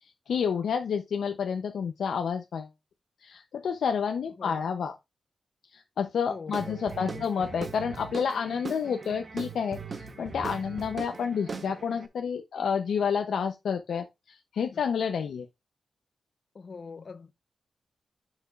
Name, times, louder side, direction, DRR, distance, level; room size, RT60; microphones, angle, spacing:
voice 1, 0.0-2.7 3.2-4.9 5.7-15.5, left 6 dB, 80° left, 0.6 m, -30 dB
voice 2, 6.3-7.5 14.7-14.8 16.5-17.3, left 4 dB, 40° left, 0.7 m, -43 dB
Guitar / Drum, 6.5-12.1, right 4 dB, 35° right, 0.9 m, -40 dB
10.5 x 5.9 x 2.4 m
wide cardioid pair, 155°, 0 cm